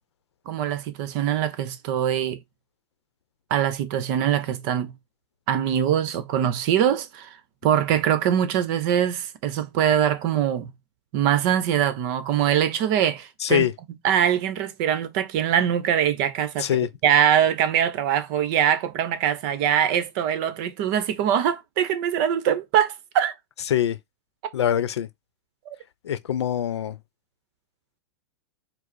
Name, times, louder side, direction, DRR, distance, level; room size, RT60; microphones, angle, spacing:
voice 1, 0.5-2.4 3.5-4.9 5.5-7.3 7.6-10.7 11.1-13.7 14.0-23.3 25.7-25.8, right 9 dB, 45° right, 0.8 m, -23 dB
voice 2, 13.4-13.7 16.6-16.9 23.7-24.0 24.5-25.1 26.0-27.0, left 10 dB, 90° left, 0.6 m, -23 dB
4.8 x 2.0 x 4.1 m
hypercardioid pair, 135°, 14 cm